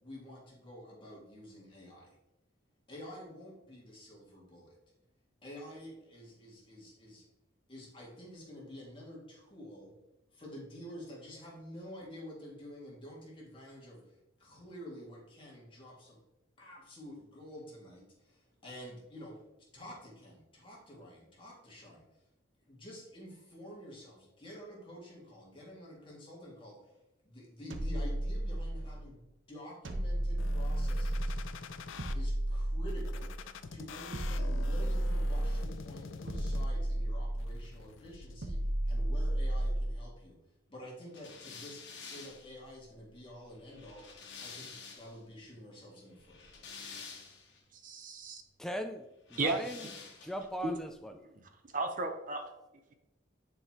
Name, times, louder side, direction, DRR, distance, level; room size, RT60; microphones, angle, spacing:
voice 1, 0.0-2.2 2.9-4.7 5.4-7.2 7.7-10.0 10.3-16.2 16.6-19.5 19.7-22.2 22.7-31.4 32.1-33.4 33.7-40.4 40.7-46.4, equal, 25° left, -5 dB, 2.0 m, -49 dB
sound 1, 27.7-29.0 29.9-31.5 32.0-33.4 34.1-35.7 36.3-37.7 38.4-40.0, right 1 dB, 80° right, 0.9 m, -32 dB
sound 2, 30.4-32.1 32.9-36.9 37.4-38.4, left 4 dB, 85° left, 0.5 m, -47 dB
sound 3, 41.1-45.2 46.2-47.6 49.2-50.5, left 5 dB, 60° left, 1.4 m, -49 dB
voice 2, 47.7-48.4 49.4-49.6 50.6-50.8 51.7-52.4, right 2 dB, 40° right, 6 dB, 0.7 m, -34 dB
voice 3, 48.6-49.9 50.2-51.1, equal, ahead, 5 dB, 0.3 m, -39 dB
9.7 x 4.7 x 2.9 m, 0.94 s
head